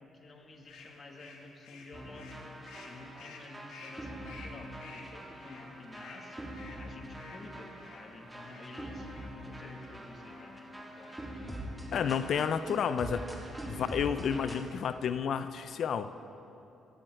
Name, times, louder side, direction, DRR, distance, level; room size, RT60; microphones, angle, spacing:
voice 1, 0.0-6.5 6.8-9.1 9.4-11.4, left 2 dB, 35° left, 3 dB, 1.4 m, -51 dB
sound 1, 0.7-8.7 9.0-9.3 9.7-9.9 10.3-10.6 10.9-11.4, left 4 dB, 85° left, 1.4 m, -53 dB
sound 2, 1.9-14.6, right 1 dB, 10° right, 1.7 m, -44 dB
voice 2, 11.9-13.3 13.7-16.1, left 7 dB, 65° left, 11 dB, 0.4 m, -31 dB
14.0 x 9.1 x 4.5 m, 2.9 s
cardioid pair, 90°, 0 cm